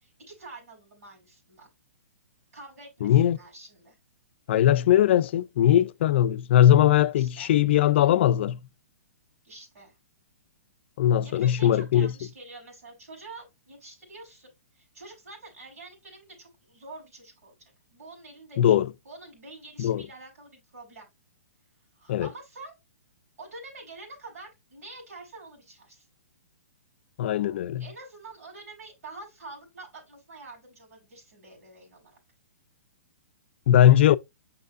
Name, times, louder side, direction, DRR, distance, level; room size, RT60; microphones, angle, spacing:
voice 1, 0.0-1.7 2.5-4.0 7.2-7.6 9.4-9.9 11.2-17.5 17.9-18.8 19.0-21.1 22.0-22.8 23.4-26.0 27.8-32.2, right 2 dB, 75° right, 4.7 m, -46 dB
voice 2, 3.0-3.4 4.5-8.6 11.0-12.1 18.6-18.9 19.8-20.0 22.1-22.3 27.2-27.8 33.7-34.2, left 11 dB, 50° left, 0.4 m, -20 dB
6.6 x 5.6 x 2.6 m
hypercardioid pair, 160°, 8 cm